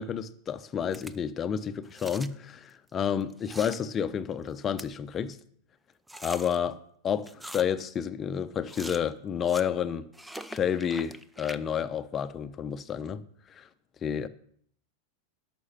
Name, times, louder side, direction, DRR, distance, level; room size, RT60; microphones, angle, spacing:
voice 1, 0.0-5.4 6.2-6.8 7.0-10.1 10.5-13.2 13.5-13.7 14.0-14.3, left 8 dB, 30° left, 0.8 m, -30 dB
sound 1, 0.9-1.2 1.8-2.3 3.2-3.8 4.4-4.5 4.8-4.9 6.1-6.6 7.2-7.8 8.7-9.1 9.5-9.6 10.1-11.6, right 1 dB, 5° right, 0.6 m, -43 dB
11.5 x 6.2 x 7.5 m
hypercardioid pair, 100°, 0 cm